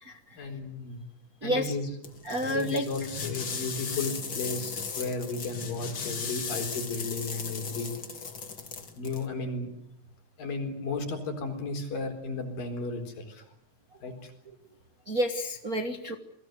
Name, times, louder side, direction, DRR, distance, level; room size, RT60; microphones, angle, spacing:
voice 1, 0.4-1.0 1.4-2.0 2.4-7.9 9.0-9.7 10.4-13.4 14.0-14.3, left 3 dB, 75° left, 5 dB, 5.8 m, -34 dB
voice 2, 1.4-1.7 2.2-2.8 15.1-16.2, equal, 40° right, 5 dB, 1.3 m, -29 dB
sound 1, 2.0-9.3, left 5 dB, 40° left, 2.9 m, -37 dB
28.5 x 21.5 x 8.0 m, 0.76 s
omnidirectional pair, 4.0 m